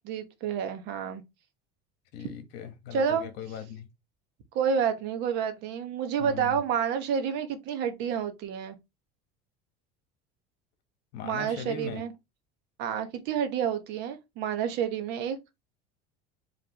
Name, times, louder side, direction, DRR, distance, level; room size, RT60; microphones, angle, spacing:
voice 1, 0.0-1.2 2.9-3.3 4.5-8.8 11.2-12.1 12.8-15.4, right 7 dB, 60° right, 1.0 m, -29 dB
voice 2, 2.1-3.9 6.2-6.6 11.1-12.0, left 7 dB, 60° left, 1.3 m, -39 dB
5.0 x 3.2 x 3.0 m
cardioid pair, 145°, 20 cm